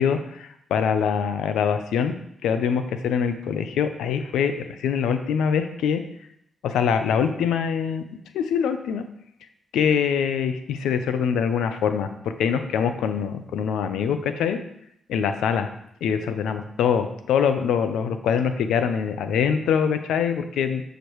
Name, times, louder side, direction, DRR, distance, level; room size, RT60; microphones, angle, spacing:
voice 1, 0.0-2.2 2.4-6.0 6.6-8.0 8.3-9.0 9.7-14.6 15.1-15.7 16.0-20.8, left 7 dB, 90° left, 9 dB, 0.6 m, -24 dB
10.5 x 5.1 x 3.1 m, 0.76 s
supercardioid pair, 55°, 0 cm